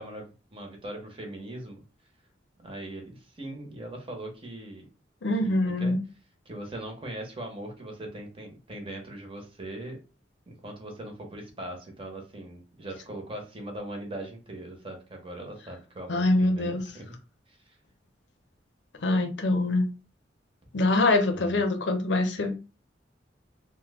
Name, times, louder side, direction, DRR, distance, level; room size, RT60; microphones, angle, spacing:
voice 1, 0.0-1.8 2.6-4.8 5.4-5.9 6.5-10.0 10.5-17.2 17.5-17.8 21.3-21.6, right 1 dB, 30° right, 0.9 m, -40 dB
voice 2, 5.2-6.0 16.1-16.8 19.0-19.9 20.7-22.5, left 2 dB, 75° left, 0.6 m, -24 dB
2.9 x 2.1 x 3.4 m
head